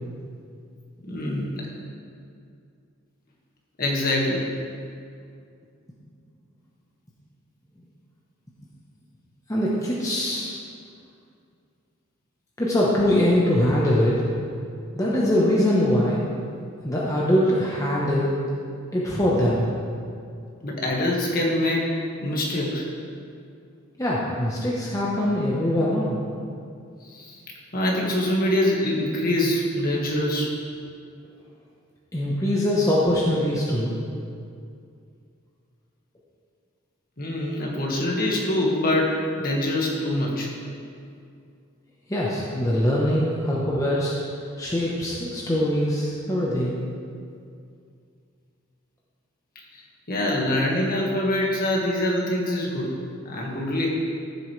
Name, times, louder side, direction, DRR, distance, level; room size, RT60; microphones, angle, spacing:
voice 1, 1.0-1.7 3.8-4.5 20.6-22.8 27.1-27.4 27.7-30.5 37.2-39.1 39.4-40.5 49.6-49.7 50.1-52.9 53.3-53.9, left 1 dB, 45° left, -3 dB, 1.8 m, -24 dB
voice 2, 9.5-10.5 12.6-14.2 14.9-16.2 16.8-18.4 18.9-19.7 24.0-26.2 32.1-34.0 42.1-44.1 44.6-46.8, left 1 dB, 15° left, -5 dB, 1.0 m, -22 dB
14.0 x 7.8 x 3.3 m, 2.4 s
head